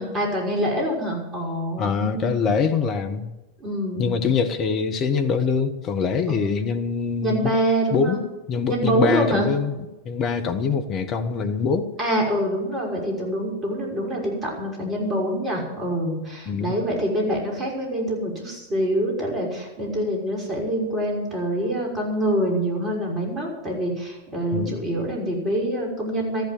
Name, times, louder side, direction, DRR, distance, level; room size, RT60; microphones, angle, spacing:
voice 1, 0.0-2.6 3.6-4.2 6.3-6.4 7.2-8.2 8.7-9.5 12.0-26.5, right 1 dB, 25° right, -1 dB, 6.0 m, -25 dB
voice 2, 1.8-3.3 4.0-7.5 7.9-8.2 8.5-11.9 16.5-16.8 24.5-24.8, left 5 dB, 30° left, 7 dB, 1.3 m, -24 dB
14.0 x 12.0 x 7.8 m, 1.0 s
figure-of-eight pair, 90°, 0 cm